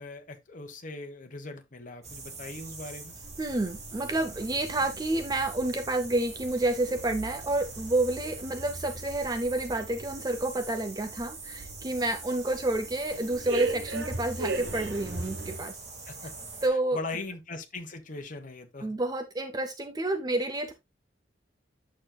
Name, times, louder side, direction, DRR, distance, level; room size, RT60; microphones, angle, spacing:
voice 1, 0.0-3.1 16.1-16.3 16.9-18.9, left 3 dB, 45° left, 1.2 m, -40 dB
sound 1, 2.0-16.7, right 4 dB, 35° right, 2.1 m, -44 dB
sound 2, 3.2-15.7, right 2 dB, 70° right, 1.2 m, -40 dB
voice 2, 3.4-15.7 16.6-17.0 18.8-20.7, right 2 dB, 20° right, 0.6 m, -29 dB
8.6 x 6.4 x 2.3 m
head